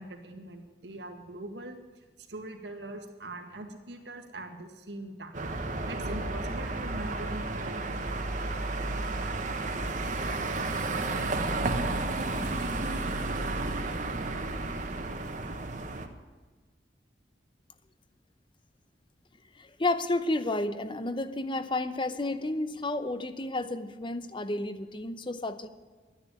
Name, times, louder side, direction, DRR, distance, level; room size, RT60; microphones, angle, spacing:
voice 1, 0.0-1.8 2.3-5.5 5.9-8.8, right 2 dB, 85° right, 4 dB, 2.0 m, -42 dB
sound 1, 5.3-16.1, right 2 dB, 45° right, 1.2 m, -32 dB
voice 2, 19.6-25.7, left 2 dB, 30° left, 12 dB, 0.7 m, -31 dB
12.0 x 10.0 x 8.7 m, 1.4 s
head